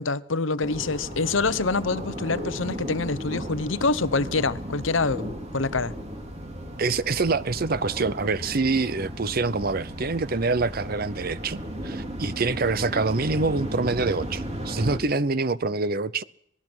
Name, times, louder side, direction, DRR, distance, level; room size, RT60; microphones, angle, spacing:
voice 1, 0.0-5.9, left 3 dB, 75° left, 0.9 m, -26 dB
sound 1, 0.6-15.0, equal, 30° right, 3.0 m, -35 dB
voice 2, 6.8-16.2, right 3 dB, 50° right, 0.8 m, -26 dB
26.0 x 19.0 x 6.2 m
head